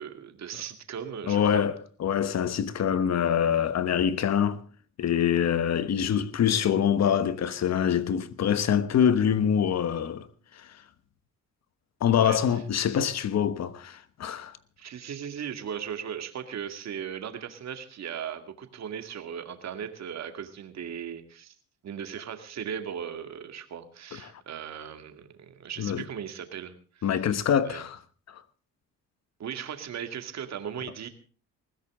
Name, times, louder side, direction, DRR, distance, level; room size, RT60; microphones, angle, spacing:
voice 1, 0.0-1.7 12.2-12.6 14.8-21.5 21.8-27.2 27.6-27.8 29.4-31.1, right 8 dB, 60° right, 2.3 m, -38 dB
voice 2, 1.3-4.6 5.0-10.3 10.5-10.7 12.0-14.6 25.8-26.0 27.0-28.0 28.3-28.4, left 8 dB, 60° left, 1.2 m, -25 dB
20.5 x 15.5 x 3.7 m
cardioid pair, 90°, 30 cm